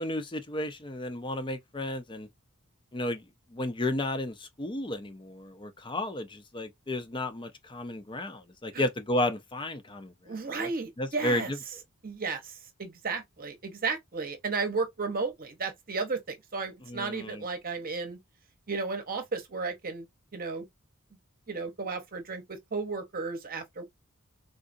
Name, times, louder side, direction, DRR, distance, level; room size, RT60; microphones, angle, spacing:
voice 1, 0.0-2.3 2.9-3.2 3.5-10.1 11.0-11.6 16.9-17.4, left 1 dB, 25° left, 0.6 m, -33 dB
voice 2, 10.3-11.5 12.0-18.2 18.7-20.1 20.3-20.7 21.5-23.8, right 4 dB, 40° right, 0.9 m, -34 dB
3.8 x 2.4 x 2.5 m
head